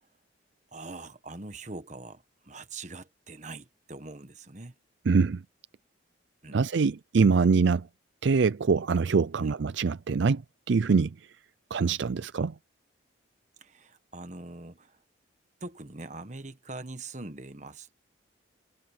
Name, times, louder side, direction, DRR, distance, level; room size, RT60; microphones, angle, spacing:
voice 1, 0.7-4.7 6.4-6.7 9.4-9.6 13.6-15.0 15.6-17.9, right 2 dB, 35° right, 1.3 m, -43 dB
voice 2, 5.1-5.4 6.5-7.9 8.2-10.4 10.7-11.1 11.7-12.5, right 4 dB, 65° right, 0.4 m, -24 dB
head